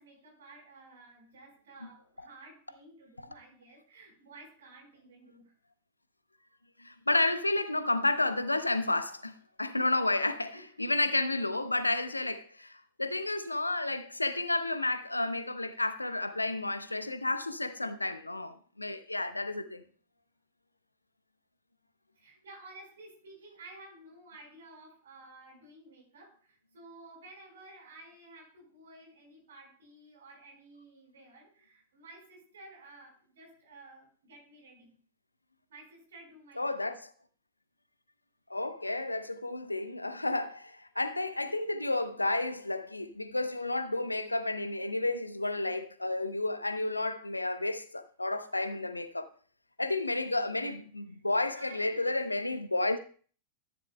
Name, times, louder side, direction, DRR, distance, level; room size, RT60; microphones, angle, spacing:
voice 1, 0.0-5.5 10.5-10.7 12.5-12.8 22.1-34.9 35.7-37.0 41.9-42.0 51.5-52.6, right 2 dB, 65° right, 4.6 m, -53 dB
voice 2, 6.8-19.8 36.6-37.1 38.5-49.3 49.8-53.0, left 2 dB, 85° left, 0.8 m, -31 dB
13.5 x 11.0 x 2.2 m
figure-of-eight pair, 90°, 0 cm